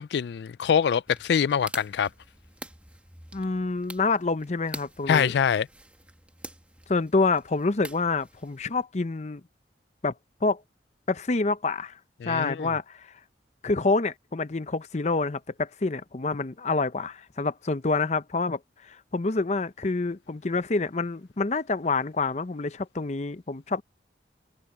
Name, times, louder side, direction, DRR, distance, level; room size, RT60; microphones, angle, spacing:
voice 1, 0.0-2.1 5.1-5.7 12.2-12.7, left 7 dB, 70° left, 0.3 m, -24 dB
sound 1, 1.1-8.8, right 2 dB, 5° right, 1.6 m, -46 dB
voice 2, 3.3-5.3 6.9-9.4 10.0-10.1 10.4-10.6 11.1-12.0 12.3-13.1 13.6-23.8, left 3 dB, 40° left, 0.7 m, -27 dB
head